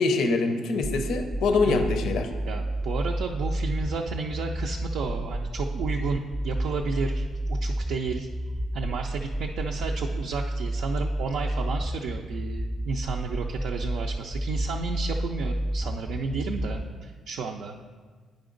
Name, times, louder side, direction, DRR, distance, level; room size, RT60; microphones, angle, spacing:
voice 1, 0.0-2.3, left 3 dB, 80° left, 7 dB, 0.5 m, -24 dB
sound 1, 0.8-16.8, right 1 dB, 10° right, 0.3 m, -30 dB
voice 2, 2.5-8.3 8.7-17.8, right 4 dB, 80° right, 1 dB, 0.4 m, -32 dB
9.2 x 5.1 x 3.8 m, 1.5 s
cardioid pair, 90°, 0 cm